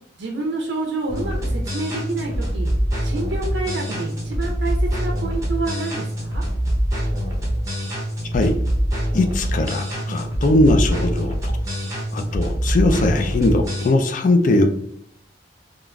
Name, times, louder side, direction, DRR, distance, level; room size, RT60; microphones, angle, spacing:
voice 1, 0.2-2.7 3.0-6.4 10.1-10.2, right 2 dB, 70° right, 0 dB, 0.5 m, -28 dB
sound 1, 1.1-13.9, equal, 15° right, 0.6 m, -24 dB
voice 2, 9.1-11.5 12.1-14.7, left 2 dB, 40° left, 5 dB, 0.3 m, -19 dB
3.6 x 2.4 x 2.2 m, 0.68 s
head